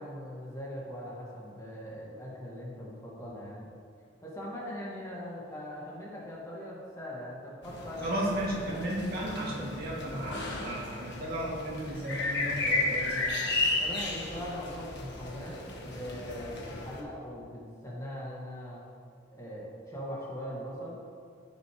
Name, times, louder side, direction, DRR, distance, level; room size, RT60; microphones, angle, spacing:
voice 1, 0.0-3.7 4.2-8.0 8.5-8.8 13.8-18.8 19.3-21.1, equal, 15° left, -5 dB, 2.0 m, -41 dB
sound 1, 7.6-17.0, left 2 dB, 60° left, 1.4 m, -34 dB
voice 2, 8.0-13.2, right 1 dB, 55° right, -5 dB, 2.3 m, -34 dB
15.5 x 6.8 x 3.2 m, 2.2 s
head